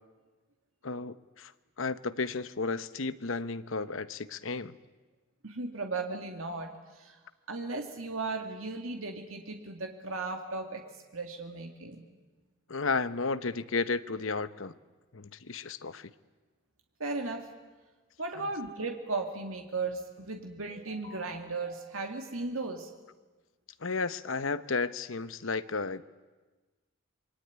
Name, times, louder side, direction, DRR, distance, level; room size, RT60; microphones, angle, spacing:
voice 1, 0.8-1.5 1.8-4.7 12.7-14.7 15.1-16.1 18.4-18.5 23.8-26.0, left 4 dB, 80° left, 14 dB, 0.9 m, -33 dB
voice 2, 5.4-7.2 7.5-12.0 17.0-17.5 18.2-22.9, right 3 dB, 90° right, 3 dB, 2.3 m, -36 dB
26.5 x 23.0 x 9.5 m, 1.3 s
head